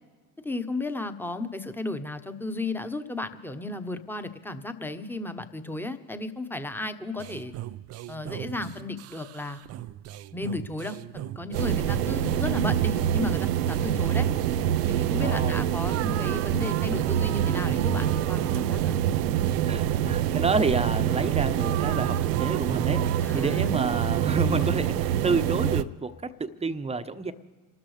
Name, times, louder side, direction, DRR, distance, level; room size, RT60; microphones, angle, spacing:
voice 1, 0.4-7.5 8.1-9.6 10.3-14.3 14.9-19.0 23.2-23.7, left 2 dB, 5° left, 9 dB, 1.1 m, -34 dB
sound 1, 7.2-23.2, right 14 dB, 35° right, 0.4 m, -39 dB
sound 2, 11.5-25.8, right 10 dB, 90° right, 0.6 m, -25 dB
voice 2, 15.2-15.6 19.7-27.3, right 3 dB, 15° right, 9 dB, 0.9 m, -29 dB
28.0 x 13.0 x 3.4 m, 1.5 s
hypercardioid pair, 70°, 47 cm